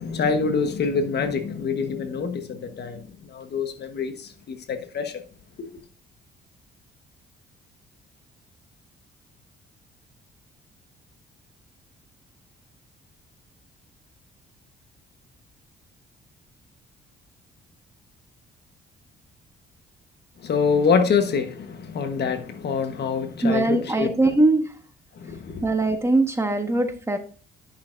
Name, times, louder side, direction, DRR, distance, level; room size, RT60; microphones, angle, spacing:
voice 1, 0.0-5.2 5.6-5.7 20.4-24.4 25.2-25.6, left 5 dB, 55° left, 1.2 m, -26 dB
voice 2, 23.4-24.6 25.6-27.2, right 2 dB, 15° right, 1.3 m, -21 dB
11.5 x 6.3 x 2.5 m
cardioid pair, 90°, 20 cm